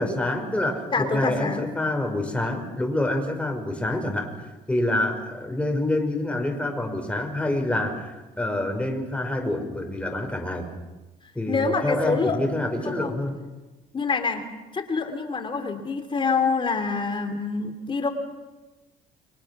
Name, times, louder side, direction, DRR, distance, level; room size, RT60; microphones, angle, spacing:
voice 1, 0.0-4.3 4.7-10.7 11.4-13.4, left 1 dB, 5° left, 3 dB, 5.4 m, -27 dB
voice 2, 0.9-1.6 11.5-12.4 12.8-13.1 13.9-14.4 14.7-18.1, left 4 dB, 30° left, 7 dB, 3.3 m, -26 dB
29.5 x 23.5 x 6.2 m, 1.1 s
cardioid pair, 110°, 17 cm